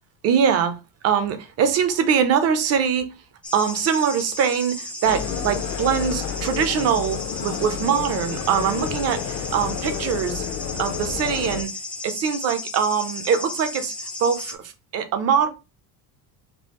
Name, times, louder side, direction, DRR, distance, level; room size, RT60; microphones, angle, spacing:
voice 1, 0.2-0.8 1.0-3.2 3.5-10.4 10.8-11.7 12.0-15.5, right 7 dB, 40° right, 0.6 m, -23 dB
sound 1, 3.4-14.5, left 2 dB, 5° left, 0.4 m, -35 dB
sound 2, 5.0-11.6, left 8 dB, 45° left, 0.7 m, -30 dB
5.4 x 2.4 x 2.9 m
cardioid pair, 165°, 39 cm